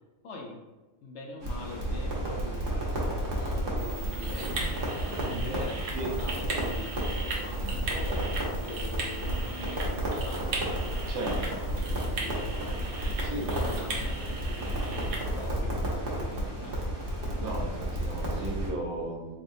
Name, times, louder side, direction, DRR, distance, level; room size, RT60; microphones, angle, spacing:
voice 1, 0.2-0.6 1.0-4.8 5.5-5.9 6.2-10.6 11.7-12.5 13.6-17.0, left 2 dB, 65° left, 1 dB, 0.8 m, -43 dB
Crackle, 1.4-18.7, right 1 dB, 45° right, 1.0 m, -32 dB
sound 1, 3.8-15.6, right 2 dB, 65° right, 1.1 m, -38 dB
voice 2, 5.2-5.5 5.9-6.1 11.1-11.6 13.2-13.5 17.3-19.4, right 1 dB, 90° right, -1 dB, 1.3 m, -36 dB
4.1 x 3.5 x 2.6 m, 1.1 s
omnidirectional pair, 1.5 m